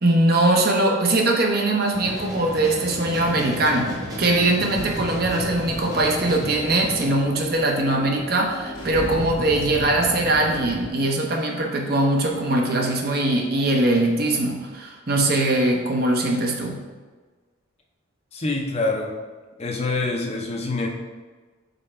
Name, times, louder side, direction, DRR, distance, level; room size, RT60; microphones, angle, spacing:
voice 1, 0.0-16.8, right 2 dB, 45° right, 1 dB, 0.8 m, -21 dB
sound 1, 1.9-7.1, equal, 20° right, 0.9 m, -33 dB
sound 2, 4.8-10.9, left 1 dB, 85° left, 1.7 m, -35 dB
voice 2, 18.3-19.1 19.6-20.9, left 3 dB, 30° left, 1 dB, 0.6 m, -25 dB
5.4 x 4.4 x 4.3 m, 1.4 s
head